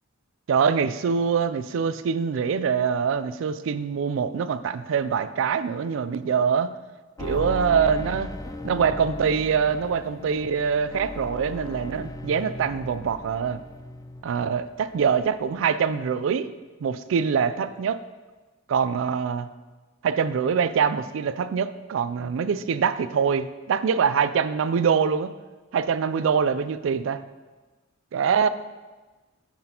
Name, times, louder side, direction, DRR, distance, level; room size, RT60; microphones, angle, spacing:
voice 1, 0.5-6.7 7.3-8.3 8.6-13.6 14.2-16.5 16.8-18.0 18.7-19.5 20.0-25.3 25.7-27.2 28.1-28.5, right 6 dB, 70° right, 13 dB, 0.3 m, -24 dB
sound 1, 7.2-14.7 14.9-15.6 15.9-16.0, left 2 dB, 15° left, 0.3 m, -37 dB
7.5 x 5.9 x 2.9 m, 1.2 s
head